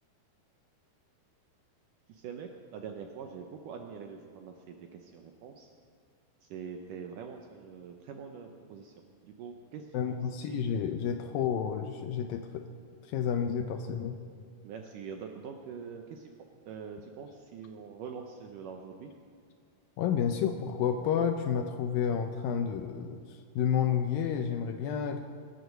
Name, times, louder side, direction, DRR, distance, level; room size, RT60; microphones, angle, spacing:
voice 1, 2.1-5.7 6.4-8.9 9.2-10.2 10.5-10.6 14.6-16.3 16.7-19.1, right 6 dB, 75° right, 4 dB, 2.0 m, -44 dB
voice 2, 9.9-12.6 13.1-14.2 20.0-23.2 23.6-25.2, left 8 dB, 80° left, 6 dB, 2.2 m, -30 dB
23.0 x 7.9 x 6.6 m, 2.1 s
omnidirectional pair, 4.6 m